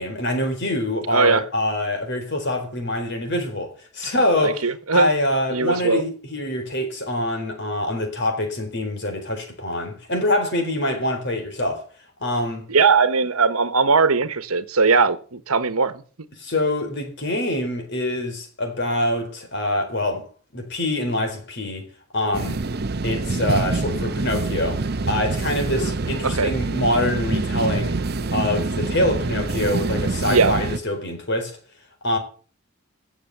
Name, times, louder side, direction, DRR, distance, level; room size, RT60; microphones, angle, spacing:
voice 1, 0.0-4.7 4.9-11.9 12.2-12.7 16.4-20.3 20.5-21.9 22.1-22.6 23.0-28.0 28.3-31.6 32.0-32.2, left 1 dB, 50° left, 4.1 m, -25 dB
voice 2, 1.1-1.4 4.4-5.1 5.5-6.0 12.7-16.0 25.8-25.9 26.2-26.5 30.3-30.6, right 4 dB, 80° right, 1.2 m, -19 dB
sound 1, 22.3-30.8, right 3 dB, 45° right, 0.7 m, -26 dB
16.0 x 7.2 x 6.8 m
head